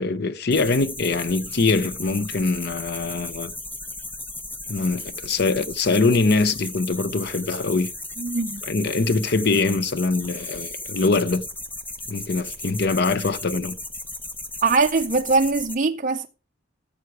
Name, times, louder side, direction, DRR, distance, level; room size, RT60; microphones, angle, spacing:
voice 1, 0.0-3.5 4.7-7.9 8.6-11.4 12.1-13.8, left 3 dB, 55° left, 0.7 m, -23 dB
sound 1, 0.5-15.7, left 2 dB, 10° left, 0.9 m, -36 dB
voice 2, 8.2-8.6 14.6-16.3, right 4 dB, 40° right, 0.5 m, -21 dB
14.0 x 7.3 x 4.8 m
head